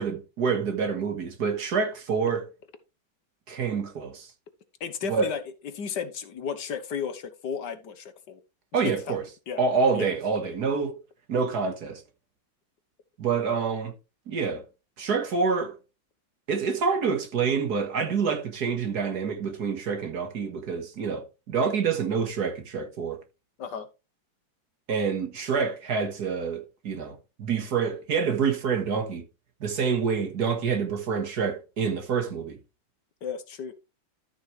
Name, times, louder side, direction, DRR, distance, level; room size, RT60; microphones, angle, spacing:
voice 1, 0.0-2.4 3.5-4.3 5.0-5.3 8.7-9.2 9.6-11.0 11.3-12.0 13.2-13.9 14.3-14.6 15.0-15.8 16.5-23.2 24.9-29.2 29.6-32.6, right 5 dB, 55° right, 1.9 m, -27 dB
voice 2, 4.8-8.4 8.8-9.2 9.5-9.6 9.9-10.2 23.6-23.9 33.2-33.7, left 7 dB, 65° left, 1.6 m, -34 dB
13.0 x 6.3 x 3.2 m
omnidirectional pair, 2.2 m